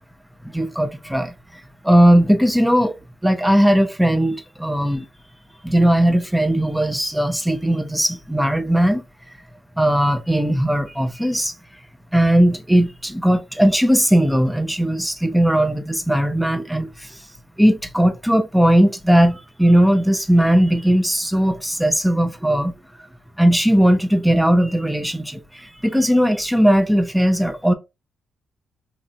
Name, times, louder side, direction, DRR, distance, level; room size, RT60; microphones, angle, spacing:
voice 1, 0.5-1.3 1.8-5.0 5.6-9.0 9.8-11.5 12.1-17.2 17.6-22.7 23.4-27.7, equal, 5° right, 0.7 m, -18 dB
3.3 x 2.6 x 2.5 m
supercardioid pair, 50°, 0 cm